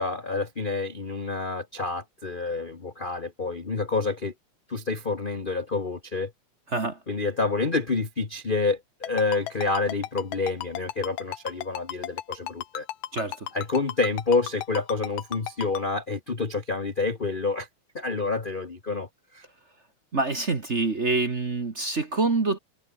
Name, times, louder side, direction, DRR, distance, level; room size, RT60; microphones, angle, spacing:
voice 1, 0.0-4.3 4.7-6.3 7.1-12.9 13.5-17.7 17.9-19.1 19.3-19.4, left 3 dB, 30° left, 0.9 m, -28 dB
Ringtone, 9.0-15.8, left 13 dB, 75° left, 2.4 m, -33 dB
voice 2, 13.1-13.5 20.1-22.6, right 3 dB, 30° right, 1.4 m, -26 dB
omnidirectional pair, 3.4 m